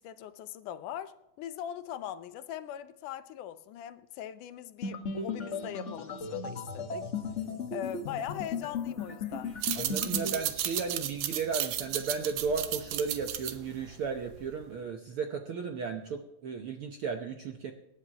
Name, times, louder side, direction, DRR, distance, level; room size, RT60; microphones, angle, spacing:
voice 1, 0.0-7.1 7.7-9.6, left 10 dB, 85° left, 2.3 m, -41 dB
sound 1, 4.8-10.4, left 4 dB, 50° left, 0.8 m, -36 dB
sound 2, 9.5-14.6, right 12 dB, 85° right, 2.5 m, -34 dB
voice 2, 9.8-17.7, right 5 dB, 70° right, 1.3 m, -35 dB
25.5 x 11.5 x 2.9 m
omnidirectional pair, 3.6 m